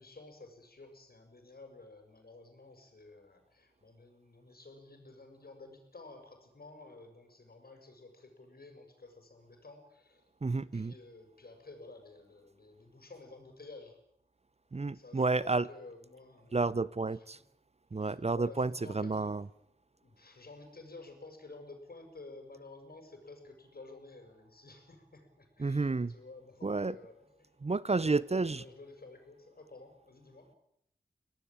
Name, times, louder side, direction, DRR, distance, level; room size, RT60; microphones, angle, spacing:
voice 1, 0.0-10.2 10.5-14.0 14.9-16.8 17.1-17.3 18.0-19.5 20.0-27.6 27.9-30.5, left 3 dB, 60° left, 5 dB, 6.9 m, -52 dB
voice 2, 10.4-10.9 14.7-15.7 16.5-17.4 17.9-19.4 25.6-26.1 26.6-27.0 27.6-28.6, right 3 dB, 40° right, 19 dB, 0.8 m, -31 dB
23.5 x 18.0 x 9.0 m, 0.75 s
cardioid pair, 45°, 17 cm